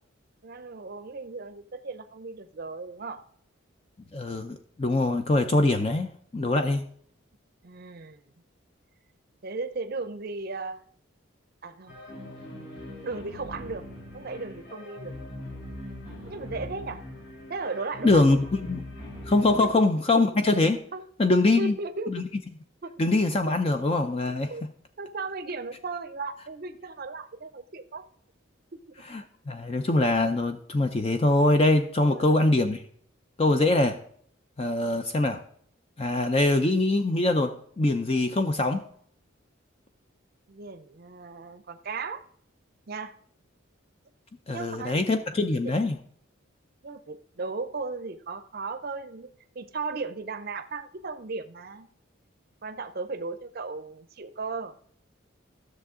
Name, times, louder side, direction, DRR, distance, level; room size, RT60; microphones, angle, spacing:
voice 1, 0.4-3.2 7.6-8.2 9.4-10.8 11.6-11.9 13.0-13.9 14.1-15.2 16.3-17.0 17.5-18.4 19.6-19.7 20.9-21.0 21.6-22.1 22.8-22.9 23.7-23.8 24.5-24.6 25.0-28.0 28.9-29.0 32.1-32.3 40.5-42.2 42.9-43.2 44.5-45.0 46.8-49.3 49.6-51.9 52.6-54.7, right 3 dB, 45° right, 10 dB, 0.6 m, -36 dB
voice 2, 4.1-6.8 18.0-18.4 18.7-18.8 19.3-20.8 21.2-21.8 22.1-22.2 23.0-24.5 29.0-32.8 33.4-34.0 34.6-35.4 36.0-38.8 44.5-45.9, left 2 dB, 30° left, 7 dB, 0.5 m, -23 dB
sound 1, 11.9-19.7, left 1 dB, 60° left, 4.2 m, -41 dB
13.5 x 6.7 x 3.7 m, 0.63 s
head